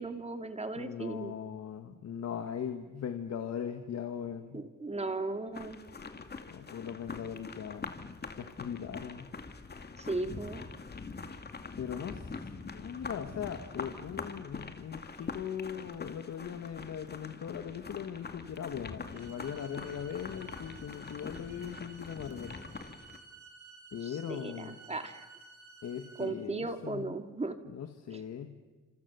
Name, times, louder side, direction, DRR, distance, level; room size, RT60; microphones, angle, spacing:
voice 1, 0.0-1.3 4.5-5.8 10.0-10.7 24.0-25.3 26.2-27.6 28.1-28.2, right 2 dB, 20° right, 8 dB, 2.3 m, -37 dB
voice 2, 0.8-4.6 6.2-8.0 8.4-9.3 11.8-22.6 23.9-24.8 25.8-27.2 27.7-28.5, left 8 dB, 60° left, 7 dB, 1.7 m, -40 dB
sound 1, 5.5-23.2, left 4 dB, 35° left, 2.3 m, -44 dB
sound 2, 19.1-26.2, right 3 dB, 70° right, 7.4 m, -54 dB
28.5 x 27.0 x 7.1 m, 1.3 s
cardioid pair, 90°, 30 cm